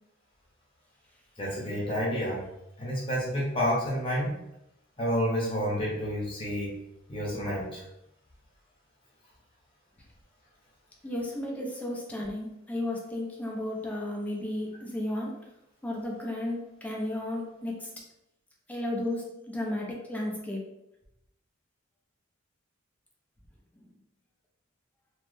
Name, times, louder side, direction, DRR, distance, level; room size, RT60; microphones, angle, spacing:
voice 1, 1.4-2.5 2.8-4.4 5.0-6.8 7.1-7.8, equal, 25° left, -5 dB, 1.0 m, -29 dB
voice 2, 11.0-15.4 15.8-17.9 18.7-20.7, left 1 dB, 5° left, -2 dB, 0.6 m, -33 dB
3.1 x 2.1 x 3.1 m, 0.86 s
head